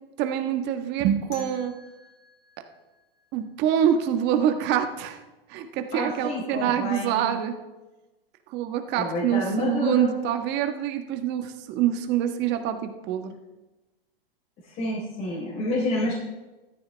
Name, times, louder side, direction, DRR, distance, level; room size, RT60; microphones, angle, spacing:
voice 1, 0.2-1.7 3.3-5.2 5.5-7.5 8.5-13.4, right 9 dB, 35° right, 6 dB, 1.4 m, -25 dB
sound 1, 1.3-4.2, left 2 dB, 55° left, 2.9 m, -50 dB
voice 2, 5.9-7.3 8.9-10.1 14.6-16.1, left 1 dB, 30° left, -6 dB, 4.0 m, -29 dB
14.5 x 13.5 x 3.4 m, 1.1 s
hypercardioid pair, 130°, 29 cm